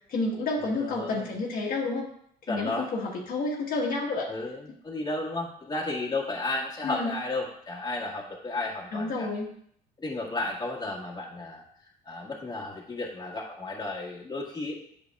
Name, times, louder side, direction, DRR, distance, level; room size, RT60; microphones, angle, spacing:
voice 1, 0.0-2.1 2.5-4.3 6.8-7.1 8.9-9.5, left 3 dB, 55° left, -2 dB, 1.4 m, -30 dB
voice 2, 0.8-1.3 2.5-2.9 4.3-4.6 4.8-9.3 10.0-11.6 12.0-14.8, left 2 dB, 25° left, -3 dB, 1.8 m, -33 dB
8.3 x 6.7 x 2.4 m, 0.66 s
cardioid pair, 110°, 17 cm